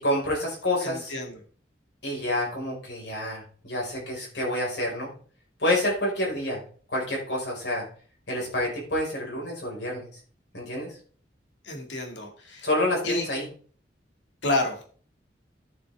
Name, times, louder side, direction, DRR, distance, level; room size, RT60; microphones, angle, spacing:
voice 1, 0.0-1.1 2.0-5.1 5.6-6.6 6.9-7.8 8.3-10.1 10.5-11.0 12.6-13.5, left 1 dB, 70° left, -2 dB, 5.3 m, -28 dB
voice 2, 0.8-1.4 11.6-12.7 13.0-13.2 14.4-14.9, left 2 dB, 85° left, 3 dB, 2.3 m, -29 dB
12.0 x 6.9 x 3.6 m, 0.44 s
head